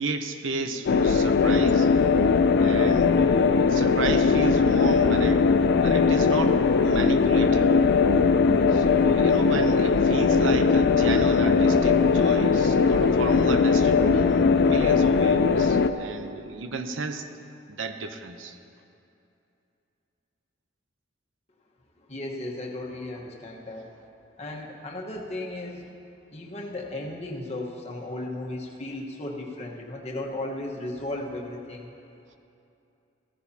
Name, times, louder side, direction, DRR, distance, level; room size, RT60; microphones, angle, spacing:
voice 1, 0.0-1.9 2.6-5.5 5.8-7.7 8.7-17.3 17.7-18.6, right 3 dB, 90° right, 8 dB, 0.7 m, -33 dB
sound 1, 0.9-15.9, left 5 dB, 60° left, 0.4 m, -20 dB
voice 2, 22.1-23.9 24.4-25.9 26.3-31.9, left 1 dB, 35° left, -2 dB, 1.2 m, -35 dB
15.0 x 14.0 x 2.8 m, 2.7 s
head